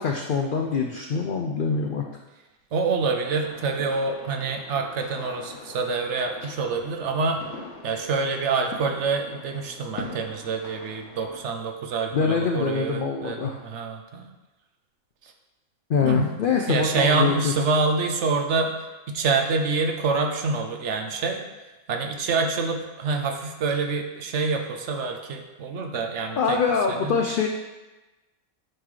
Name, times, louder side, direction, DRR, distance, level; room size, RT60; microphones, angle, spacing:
voice 1, 0.0-2.0 12.1-13.6 15.9-17.5 26.4-27.5, left 5 dB, 85° left, 2 dB, 0.4 m, -24 dB
voice 2, 2.7-7.4 7.8-14.3 15.2-15.3 16.0-16.3 16.7-18.8 19.1-21.4 21.9-26.6 26.9-27.2, right 4 dB, 65° right, 4 dB, 0.8 m, -26 dB
sound 1, 3.2-11.4, left 3 dB, 60° left, 1.4 m, -43 dB
9.3 x 3.8 x 3.2 m, 1.1 s
omnidirectional pair, 1.5 m